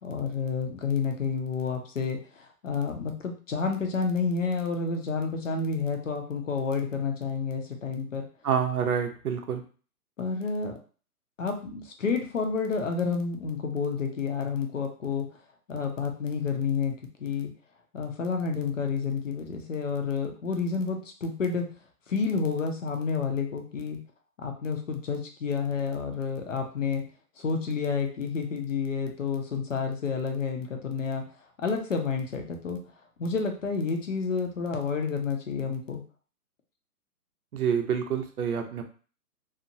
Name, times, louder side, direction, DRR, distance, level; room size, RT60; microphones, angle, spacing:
voice 1, 0.0-8.3 10.2-10.8 11.4-15.3 15.7-17.5 17.9-21.7 22.1-24.0 24.4-27.1 27.4-31.2 31.6-32.8 33.2-36.0, left 5 dB, 55° left, 3 dB, 0.6 m, -30 dB
voice 2, 8.4-9.6 37.5-38.8, right 7 dB, 70° right, 5 dB, 0.7 m, -27 dB
2.9 x 2.0 x 2.6 m, 0.39 s
hypercardioid pair, 175°, 46 cm